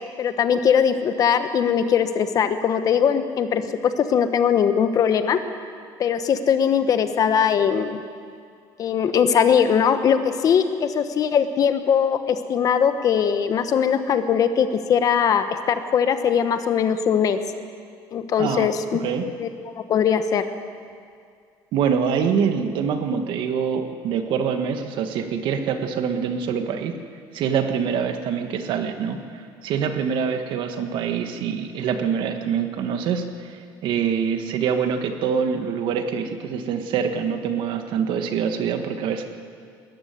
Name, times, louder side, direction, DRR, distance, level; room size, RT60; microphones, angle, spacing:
voice 1, 0.2-5.4 6.0-8.0 8.8-17.4 18.1-19.0 19.4-19.5 19.8-20.4, left 7 dB, 40° left, 9 dB, 1.1 m, -20 dB
voice 2, 18.4-19.3 21.7-27.0 27.3-39.2, right 7 dB, 60° right, 6 dB, 1.7 m, -25 dB
20.0 x 14.0 x 9.5 m, 2.2 s
cardioid pair, 155°, 9 cm